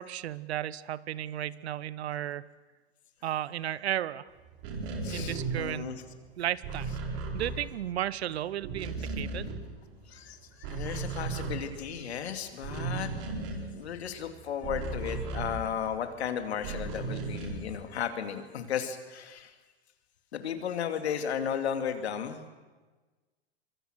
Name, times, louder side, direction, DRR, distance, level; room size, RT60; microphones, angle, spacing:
voice 1, 0.0-2.5 3.2-4.3 5.1-5.9 6.4-6.9 7.3-9.5, right 12 dB, 70° right, 19 dB, 0.9 m, -34 dB
sound 1, 4.5-8.2 8.5-10.2 10.5-16.1 16.6-17.8, right 3 dB, 55° right, 4.6 m, -36 dB
voice 2, 5.0-6.0 10.1-13.1 13.7-19.5 20.3-22.4, left 8 dB, 75° left, 7 dB, 2.8 m, -34 dB
24.5 x 23.5 x 6.4 m, 1.3 s
hypercardioid pair, 100°, 33 cm